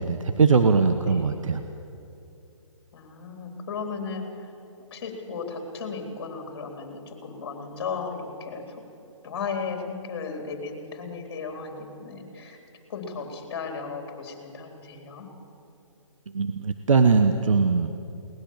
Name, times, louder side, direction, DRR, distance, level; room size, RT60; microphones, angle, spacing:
voice 1, 0.0-1.6 16.3-18.0, right 5 dB, 70° right, 7 dB, 1.2 m, -21 dB
voice 2, 1.1-1.4 2.9-4.5 4.9-8.8 9.2-12.6 12.9-15.3, left 5 dB, 45° left, 3 dB, 3.9 m, -35 dB
21.5 x 19.0 x 7.5 m, 2.7 s
figure-of-eight pair, 145°, 17 cm